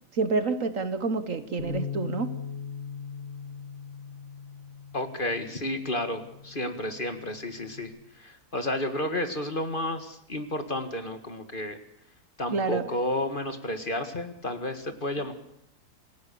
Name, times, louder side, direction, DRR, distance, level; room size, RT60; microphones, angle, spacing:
voice 1, 0.1-2.3 12.5-12.8, right 4 dB, 55° right, 11 dB, 1.6 m, -28 dB
Bass guitar, 1.6-7.8, left 6 dB, 55° left, 3.8 m, -40 dB
voice 2, 4.9-11.8 12.4-15.3, left 1 dB, 35° left, 7 dB, 1.9 m, -31 dB
28.0 x 17.0 x 7.0 m, 0.71 s
omnidirectional pair, 1.7 m